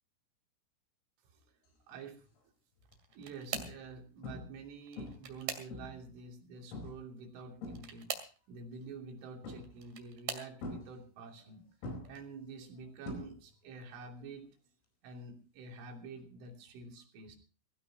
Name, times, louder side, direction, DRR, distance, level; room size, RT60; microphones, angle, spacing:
sound 1, 1.9-2.2 2.8-2.9 3.5-4.0 4.2-4.7 5.0-6.1 6.7-7.1 7.4-8.3 9.4-10.0 10.6-11.5 11.8-13.7 14.0-14.4 16.5-16.6, left 2 dB, 80° left, 7.2 m, -45 dB
voice 1, 1.9-2.5 3.2-11.6 12.1-14.5 15.0-17.4, right 4 dB, 70° right, 2 dB, 5.2 m, -48 dB
sound 2, 2.8-3.9 4.8-6.1 7.7-8.4 9.5-10.5 11.3-11.6 12.1-12.2 13.5-13.6, right 8 dB, 50° right, 3.3 m, -43 dB
22.0 x 16.5 x 2.9 m, 0.37 s
omnidirectional pair, 5.9 m